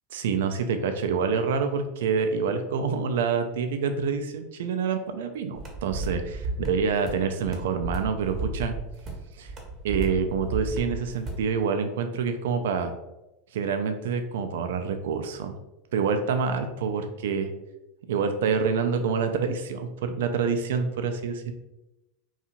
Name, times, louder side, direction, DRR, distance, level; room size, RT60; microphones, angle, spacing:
voice 1, 0.1-8.7 9.4-9.5 9.8-12.9 13.5-15.5 15.9-17.5 18.1-21.5, right 5 dB, 65° right, 7 dB, 0.3 m, -27 dB
sound 1, 5.6-11.5, right 2 dB, 35° right, 0.7 m, -34 dB
2.7 x 2.3 x 2.8 m, 0.96 s
figure-of-eight pair, 85°, 0 cm